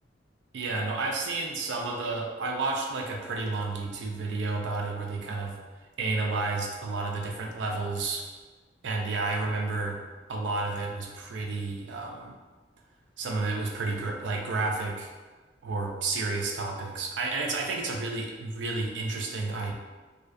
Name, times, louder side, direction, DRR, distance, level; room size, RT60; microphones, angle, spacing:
voice 1, 0.5-5.6 6.0-8.3 8.8-10.0 10.3-12.3 13.2-15.1 15.7-19.7, right 3 dB, 80° right, 1 dB, 0.4 m, -31 dB
2.4 x 2.1 x 2.4 m, 1.3 s
head